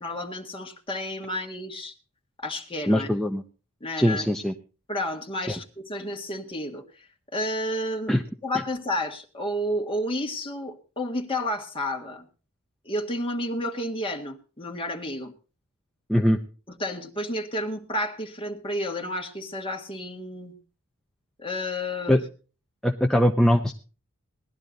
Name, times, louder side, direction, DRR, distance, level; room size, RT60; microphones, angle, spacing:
voice 1, 0.0-1.9 2.4-3.1 3.8-4.3 4.9-8.2 8.4-12.3 12.8-15.3 16.7-20.5 21.4-22.2, left 1 dB, 25° left, 2 dB, 1.8 m, -31 dB
voice 2, 2.9-3.4 4.0-4.5 5.5-5.6 8.1-8.2 16.1-16.4 22.1-22.2 22.8-23.7, equal, ahead, 4 dB, 0.6 m, -21 dB
17.5 x 11.5 x 3.9 m, 0.36 s
head